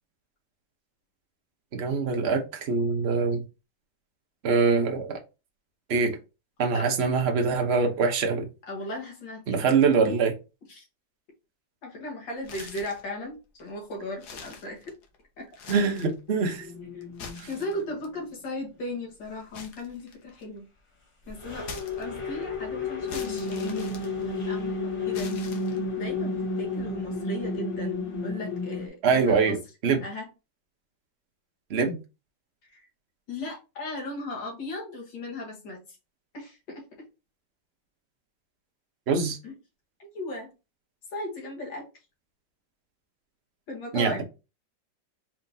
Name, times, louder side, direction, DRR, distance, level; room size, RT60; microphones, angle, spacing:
voice 1, 1.7-3.4 4.4-5.2 5.9-6.2 6.6-8.5 9.5-10.3 15.7-16.6 17.4-17.5 29.0-30.0 31.7-32.0 39.1-39.4 43.9-44.2, right 5 dB, 45° right, 1.0 m, -24 dB
voice 2, 8.6-9.7 10.7-10.9 11.8-14.9 15.4-15.5 16.5-17.2 17.5-20.6 21.3-21.7 22.0-25.4 26.0-29.6 30.0-30.3 32.7-32.9 33.3-35.8 36.3-36.9 39.4-39.6 40.0-40.5 41.1-41.9 43.7-44.2, left 2 dB, 85° left, 2.1 m, -37 dB
sound 1, 12.4-13.1 13.6-13.7 14.1-15.2 15.5-16.2 17.0-18.1 19.5-20.6 21.6-22.4 23.1-24.6 25.1-26.0, left 5 dB, 65° left, 1.4 m, -43 dB
sound 2, 16.4-18.2 21.2-28.9, left 3 dB, 40° left, 0.4 m, -32 dB
4.6 x 3.5 x 2.7 m
omnidirectional pair, 1.9 m